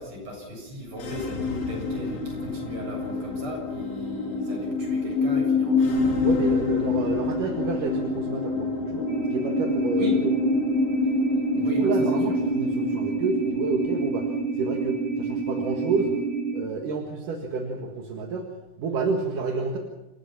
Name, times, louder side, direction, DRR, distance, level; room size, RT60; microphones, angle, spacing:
voice 1, 0.0-6.0 10.0-10.2 11.6-12.2, left 1 dB, 25° right, 0 dB, 8.0 m, -36 dB
sound 1, 0.9-16.4, left 3 dB, 80° left, 6.4 m, -27 dB
voice 2, 6.2-10.3 11.5-16.2 16.5-18.5 18.8-19.8, right 4 dB, 55° right, 2 dB, 2.7 m, -29 dB
sound 2, 9.1-16.6, right 5 dB, 75° right, 5.7 m, -29 dB
28.5 x 18.0 x 5.9 m, 1.0 s
omnidirectional pair, 5.4 m